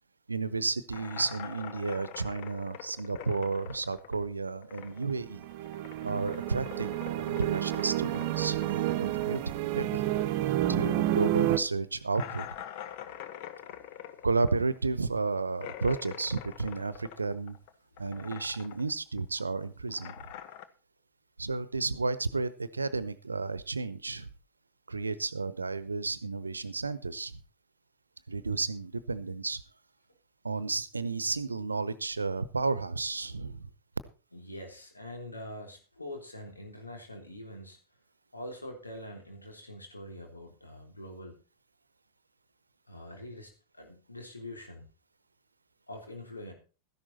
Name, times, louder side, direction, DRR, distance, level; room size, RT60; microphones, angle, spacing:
voice 1, 0.3-5.5 6.0-10.1 10.7-12.5 14.2-17.6 18.0-20.2 21.4-24.3 24.9-27.4 28.3-29.6 30.4-33.7, right 3 dB, 80° right, 17 dB, 0.9 m, -32 dB
sound 1, 0.9-5.2 5.4-10.5 10.8-10.9 11.3-11.4 12.1-17.7 18.0-18.9 19.2-20.7, left 11 dB, 50° left, 1.3 m, -45 dB
sound 2, 5.0-11.6, right 14 dB, 45° right, 0.9 m, -30 dB
voice 2, 34.3-37.8 38.3-41.4 42.9-44.9 45.9-46.5, left 1 dB, 80° left, 3 dB, 3.5 m, -44 dB
13.5 x 11.0 x 4.2 m, 0.35 s
figure-of-eight pair, 90°, 0 cm